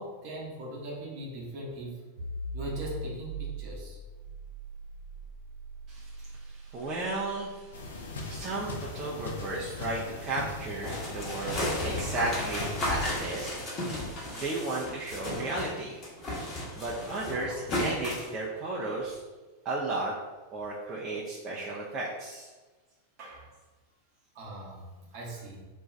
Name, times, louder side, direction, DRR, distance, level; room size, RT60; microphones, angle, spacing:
voice 1, 0.0-2.0 2.5-4.0 23.2-23.5 24.3-24.8 25.1-25.6, right 1 dB, 45° right, -3 dB, 0.8 m, -40 dB
sound 1, 2.2-13.6, right 2 dB, 90° left, 1.0 m, -44 dB
voice 2, 5.9-16.1 16.8-19.2 19.6-20.1 20.5-22.5, right 2 dB, 30° right, -5 dB, 0.4 m, -34 dB
sound 2, 7.7-13.2, left 3 dB, 65° left, 0.4 m, -39 dB
sound 3, 10.8-15.7 16.0-18.3, left 1 dB, 30° left, 1.0 m, -34 dB
2.5 x 2.2 x 3.1 m, 1.2 s
figure-of-eight pair, 90°, 0 cm